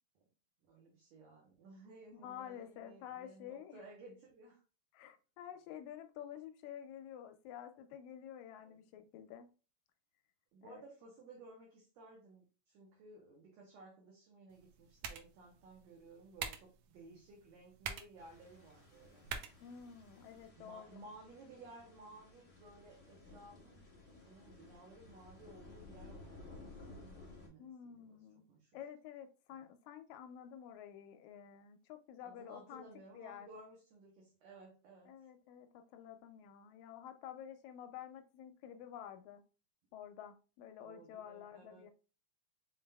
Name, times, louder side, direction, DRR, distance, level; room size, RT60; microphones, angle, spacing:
voice 1, 0.7-4.6 8.6-8.8 10.5-19.3 20.6-23.9 24.2-28.2 28.5-28.8 29.5-29.7 32.2-35.3 40.8-41.9, right 2 dB, 70° right, -1 dB, 2.1 m, -57 dB
voice 2, 2.1-3.8 4.9-9.5 10.6-10.8 19.6-21.1 27.6-28.4 28.7-32.9 33.1-33.5 35.1-39.4 39.9-41.9, left 9 dB, 80° left, 7 dB, 1.9 m, -50 dB
sound 1, 14.5-20.5, right 6 dB, 85° right, 1.3 m, -48 dB
sound 2, 18.2-27.5, left 3 dB, 30° left, 1.7 m, -57 dB
5.4 x 3.9 x 2.2 m, 0.33 s
omnidirectional pair, 3.4 m